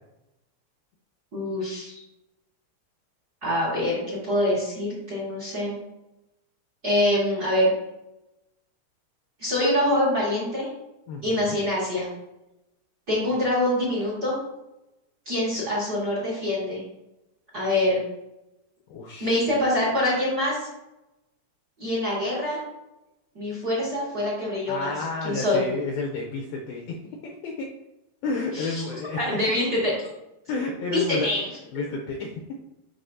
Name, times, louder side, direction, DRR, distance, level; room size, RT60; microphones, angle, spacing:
voice 1, 1.3-2.0 3.4-5.8 6.8-7.7 9.4-10.7 11.2-12.1 13.1-14.4 15.3-16.8 17.5-18.0 19.2-20.7 21.8-22.6 23.3-24.9 25.2-25.6 28.5-28.8 29.2-29.9 30.9-31.5, left 1 dB, 30° right, -5 dB, 2.0 m, -25 dB
voice 2, 11.1-11.6 18.9-19.4 24.7-27.0 27.2-27.7 28.2-29.4 30.5-31.5 31.7-32.3, left 3 dB, 80° left, 0 dB, 2.2 m, -31 dB
11.5 x 4.2 x 2.7 m, 0.92 s
omnidirectional pair, 5.0 m